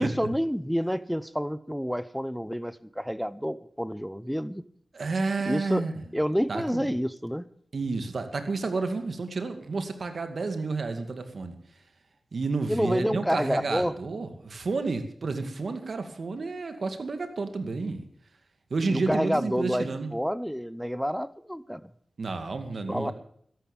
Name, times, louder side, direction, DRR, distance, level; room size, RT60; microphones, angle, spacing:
voice 1, 0.0-4.6 5.5-5.8 6.1-7.4 12.7-13.9 18.9-21.8 22.9-23.1, equal, ahead, 16 dB, 0.9 m, -29 dB
voice 2, 4.9-6.1 6.5-6.9 7.7-11.6 12.3-18.0 18.7-20.1 22.2-23.1, right 3 dB, 70° right, 7 dB, 2.2 m, -30 dB
13.5 x 11.5 x 7.2 m, 0.64 s
cardioid pair, 50°, 0 cm